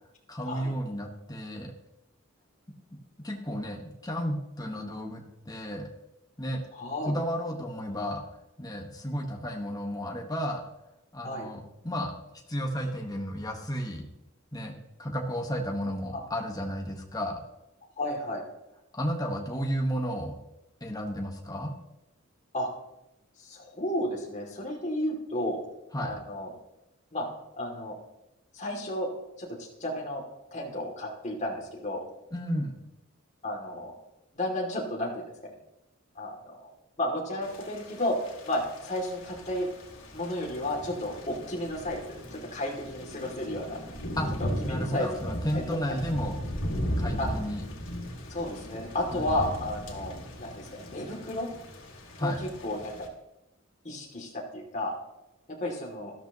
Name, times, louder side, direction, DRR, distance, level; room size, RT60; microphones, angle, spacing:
voice 1, 0.3-1.7 2.9-3.0 3.2-5.9 6.4-6.6 7.0-8.2 8.6-10.6 11.1-14.1 14.5-17.4 18.9-20.4 20.8-21.7 25.9-26.2 32.3-32.8 44.2-44.3 44.6-46.4 47.0-47.6 49.1-49.4 52.2-52.5, equal, 20° left, 2 dB, 1.4 m, -33 dB
voice 2, 6.7-7.1 11.2-11.5 16.1-16.2 18.0-18.4 22.5-22.7 23.4-25.6 26.0-26.5 27.1-27.3 27.6-28.0 28.5-29.1 29.4-30.2 30.5-32.1 33.4-33.9 34.3-35.6 36.1-36.7 37.0-38.2 38.5-39.7 40.1-43.8 44.4-45.7 47.2-47.3 48.3-51.5 52.2-53.1 53.8-54.9 55.6-56.1, left 1 dB, 35° left, -1 dB, 2.5 m, -33 dB
Thunder / Rain, 37.4-53.1, equal, 85° left, 2.2 m, -37 dB
13.0 x 12.5 x 3.0 m, 0.91 s
head